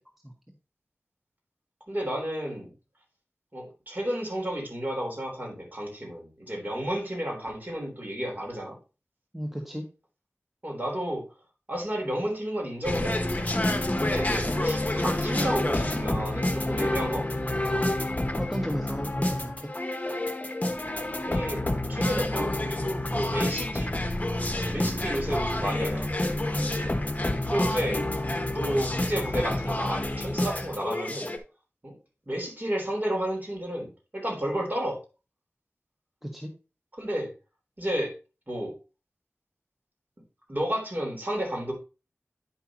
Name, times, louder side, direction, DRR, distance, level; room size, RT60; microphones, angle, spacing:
voice 1, 1.9-2.7 3.5-8.8 10.6-11.2 11.7-13.2 14.0-17.5 21.2-21.6 21.9-22.5 22.8-23.9 24.7-26.1 27.5-28.0 28.5-31.3 31.8-32.0 32.2-35.0 37.0-37.3 37.8-38.1 38.5-38.7 40.5-41.7, equal, 40° right, 0 dB, 3.3 m, -31 dB
voice 2, 9.3-9.9 14.0-14.1 18.4-19.7 26.5-26.7 36.2-36.5, equal, 5° right, 1 dB, 1.3 m, -34 dB
sound 1, 12.8-31.4, left 1 dB, 30° left, 1.1 m, -28 dB
9.7 x 5.6 x 2.9 m, 0.31 s
wide cardioid pair, 55°, 5 cm